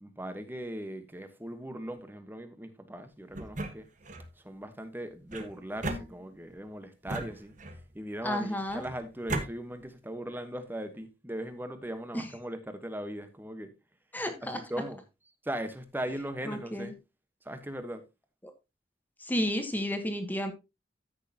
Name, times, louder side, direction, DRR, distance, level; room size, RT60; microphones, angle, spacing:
voice 1, 0.0-3.9 4.4-7.5 7.9-13.7 14.4-15.0 15.4-16.9 17.4-18.0, right 1 dB, 10° right, 1.2 m, -39 dB
sound 1, 3.3-4.3 5.3-6.6 7.1-7.9 8.7-9.5, right 2 dB, 45° right, 1.4 m, -37 dB
voice 2, 8.2-8.8 12.1-12.3 14.1-14.6 16.5-16.9 19.2-20.5, equal, 10° left, 1.3 m, -32 dB
14.0 x 6.5 x 2.9 m
head